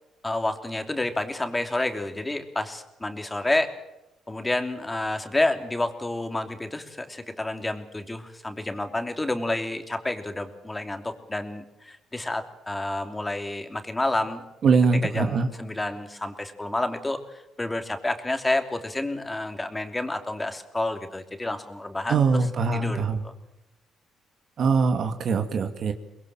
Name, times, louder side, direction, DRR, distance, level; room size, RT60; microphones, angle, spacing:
voice 1, 0.2-3.7 4.3-14.4 15.0-22.2 22.7-23.3, left 2 dB, 15° left, 7 dB, 3.0 m, -29 dB
voice 2, 14.6-15.5 22.1-23.2 24.6-25.9, right 4 dB, 60° right, 7 dB, 2.1 m, -22 dB
24.0 x 21.5 x 7.5 m, 0.92 s
cardioid pair, 90°, 0 cm